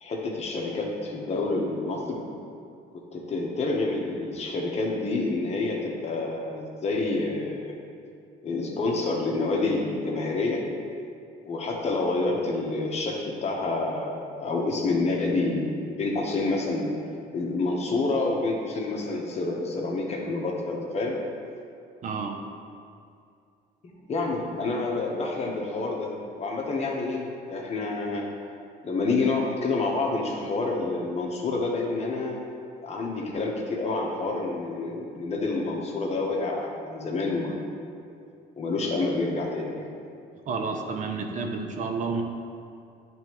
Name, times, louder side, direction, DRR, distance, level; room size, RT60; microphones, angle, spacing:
voice 1, 0.0-2.2 2.9-7.7 8.4-10.7 11.4-21.2 23.8-28.3 28.8-32.4 32.8-37.6 38.6-39.8, left 3 dB, 40° left, -1 dB, 1.1 m, -28 dB
voice 2, 22.0-22.4 40.5-42.2, right 4 dB, 50° right, 3 dB, 0.6 m, -30 dB
10.5 x 3.5 x 3.1 m, 2.4 s
cardioid pair, 110°, 17 cm